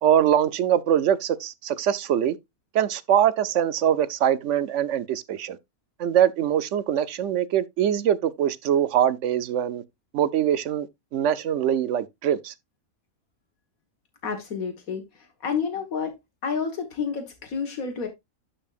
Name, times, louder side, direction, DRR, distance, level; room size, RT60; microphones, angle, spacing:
voice 1, 0.0-2.4 2.7-5.6 6.0-9.8 10.1-10.9 11.1-12.5, right 10 dB, 65° right, 0.9 m, -23 dB
voice 2, 14.2-16.2 16.4-18.1, left 6 dB, 90° left, 1.8 m, -30 dB
12.0 x 5.5 x 2.4 m
omnidirectional pair, 1.4 m